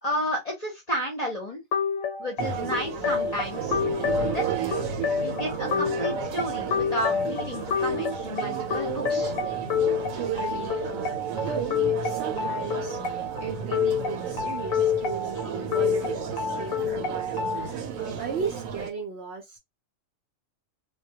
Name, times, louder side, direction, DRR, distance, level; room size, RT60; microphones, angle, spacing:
voice 1, 0.0-1.6 2.2-4.6 5.2-9.3, equal, 35° left, 0.7 m, -32 dB
sound 1, 1.7-17.7, left 6 dB, 85° left, 1.1 m, -29 dB
sound 2, 2.4-18.9, right 8 dB, 80° right, 1.0 m, -33 dB
voice 2, 10.1-19.6, right 5 dB, 65° right, 0.7 m, -36 dB
2.2 x 2.2 x 2.7 m
omnidirectional pair, 1.4 m